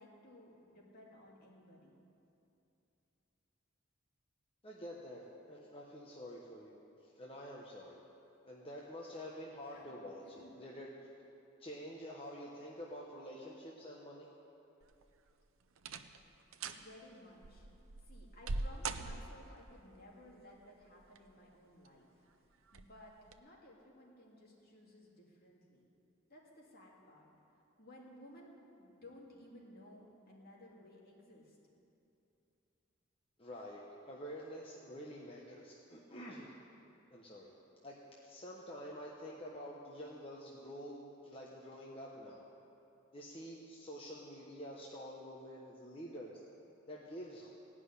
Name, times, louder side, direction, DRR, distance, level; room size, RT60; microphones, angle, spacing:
voice 1, 0.0-1.9 9.7-10.0 10.2-10.5 16.8-17.7 18.0-22.2 22.7-25.9 26.3-27.3 27.8-31.6, left 1 dB, 50° left, -3 dB, 2.6 m, -57 dB
voice 2, 4.6-6.8 7.1-8.0 8.4-10.9 11.6-14.3 33.4-36.5 37.1-37.5 37.8-38.0 38.2-42.5 43.1-46.4 46.9-47.5, equal, 25° left, -4 dB, 1.1 m, -48 dB
sound 1, 14.8-15.3 15.8-16.2 16.5-16.9 17.4-19.6 20.8-21.4 21.9-22.0 22.7-22.9 23.3-23.4, right 3 dB, 85° right, 0.7 m, -42 dB
17.0 x 6.2 x 9.7 m, 2.8 s
head